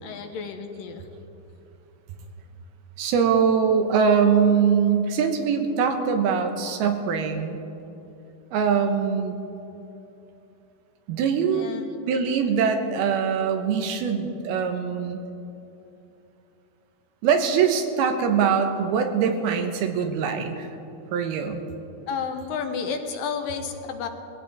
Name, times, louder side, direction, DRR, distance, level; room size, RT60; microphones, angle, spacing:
voice 1, 0.0-1.1 11.5-11.9 22.1-24.1, left 6 dB, 75° left, 5 dB, 2.6 m, -31 dB
voice 2, 3.0-7.6 8.5-9.4 11.1-11.7 12.1-15.2 17.2-20.7 21.1-21.6, right 6 dB, 90° right, 6 dB, 3.0 m, -22 dB
22.0 x 16.0 x 3.5 m, 2.9 s
omnidirectional pair, 4.3 m